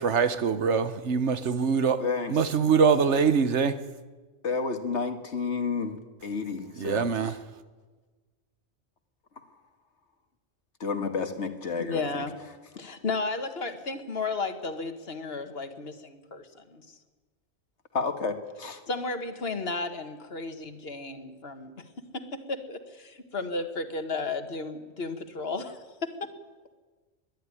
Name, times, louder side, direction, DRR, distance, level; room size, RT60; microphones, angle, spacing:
voice 1, 0.0-2.0 2.3-3.7 6.8-7.3, right 6 dB, 75° right, 1.3 m, -23 dB
voice 2, 2.0-2.4 4.4-7.4 10.8-12.3 17.9-18.8, left 4 dB, 75° left, 2.0 m, -31 dB
voice 3, 11.8-12.3 12.8-17.0 18.9-21.8 22.1-26.3, left 3 dB, 60° left, 1.9 m, -34 dB
22.0 x 12.5 x 9.9 m
omnidirectional pair, 1.2 m